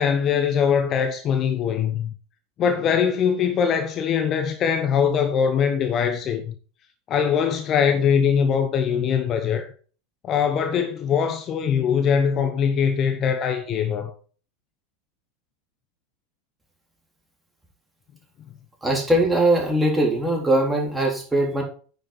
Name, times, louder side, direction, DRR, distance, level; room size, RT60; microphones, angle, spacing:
voice 1, 0.0-2.1 2.6-6.5 7.1-9.7 10.2-14.1, left 7 dB, 40° left, 1.1 m, -22 dB
voice 2, 18.8-21.6, right 1 dB, 10° right, 3.8 m, -21 dB
9.9 x 6.6 x 4.4 m
figure-of-eight pair, 80°, 0 cm